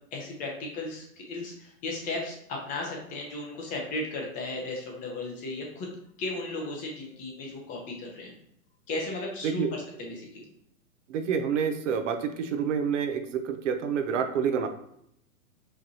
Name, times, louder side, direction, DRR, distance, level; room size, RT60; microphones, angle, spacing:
voice 1, 0.1-5.9 6.2-8.3 8.9-9.7 10.0-10.4, left 2 dB, 20° left, 0 dB, 0.6 m, -35 dB
voice 2, 11.1-14.7, right 7 dB, 55° right, 7 dB, 0.6 m, -28 dB
4.8 x 3.2 x 2.8 m, 0.72 s
hypercardioid pair, 140°, 44 cm